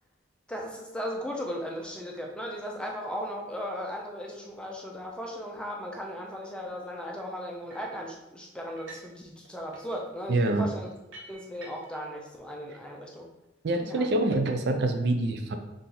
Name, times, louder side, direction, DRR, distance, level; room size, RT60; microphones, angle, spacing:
voice 1, 0.5-10.9 11.3-13.3 13.9-14.1, equal, 5° left, 0 dB, 0.5 m, -37 dB
sound 1, 7.7-8.0 8.7-9.2 9.4-12.1, right 2 dB, 80° right, 1.0 m, -50 dB
voice 2, 10.3-10.7 13.6-15.6, right 2 dB, 60° right, 6 dB, 0.4 m, -25 dB
4.2 x 2.6 x 3.9 m, 0.94 s
head